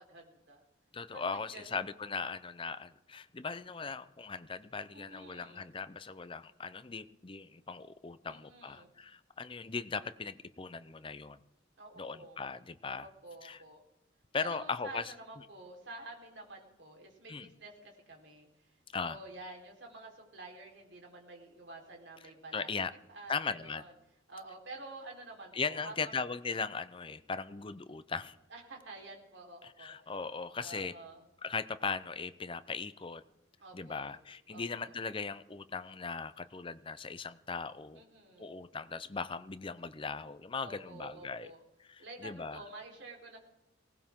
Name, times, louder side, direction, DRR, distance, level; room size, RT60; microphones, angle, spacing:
voice 1, 0.1-0.6 1.1-1.9 4.9-5.7 8.3-8.9 11.8-12.4 13.0-13.8 14.5-18.5 19.0-22.8 23.1-23.9 24.3-26.2 28.5-30.0 30.6-31.2 33.6-34.1 34.5-35.0 38.0-38.5 40.6-41.6 42.0-43.4, right 2 dB, 65° right, 0 dB, 4.0 m, -49 dB
voice 2, 0.9-11.4 12.0-13.1 13.4-13.6 14.3-15.5 17.3-17.5 18.9-19.2 22.5-22.9 23.3-23.8 25.5-28.4 29.6-30.9 31.4-33.2 33.7-38.0 38.4-41.5 41.8-42.6, left 5 dB, 25° left, 14 dB, 0.6 m, -39 dB
19.5 x 18.0 x 3.7 m, 0.91 s
head